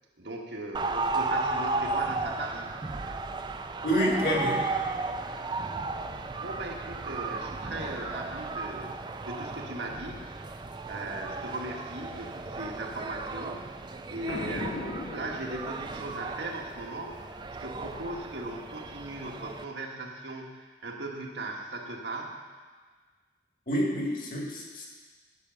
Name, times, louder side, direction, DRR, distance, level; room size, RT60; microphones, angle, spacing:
voice 1, 0.2-2.7 6.1-10.3 10.9-13.7 14.1-22.3, right 2 dB, 85° right, 0 dB, 1.5 m, -38 dB
sound 1, 0.7-19.6, right 3 dB, 25° right, 0.4 m, -35 dB
voice 2, 3.8-4.6 23.7-24.9, equal, 50° left, -2 dB, 2.1 m, -27 dB
Boom, 14.3-16.1, left 2 dB, 70° left, 0.7 m, -37 dB
10.5 x 6.1 x 6.8 m, 1.5 s
head